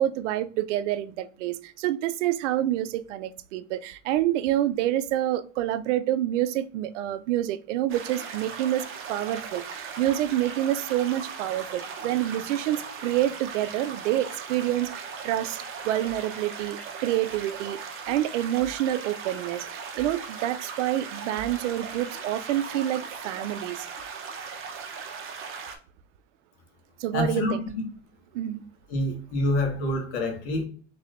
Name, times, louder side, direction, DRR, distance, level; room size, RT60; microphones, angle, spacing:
voice 1, 0.0-23.9 27.0-27.6 28.3-28.6, right 13 dB, 80° right, 0.5 m, -27 dB
sound 1, 7.9-25.8, right 5 dB, 35° right, 0.7 m, -38 dB
voice 2, 27.1-27.6 28.9-30.7, left 2 dB, 75° left, 1.6 m, -26 dB
3.6 x 3.3 x 2.4 m
supercardioid pair, 125°, 36 cm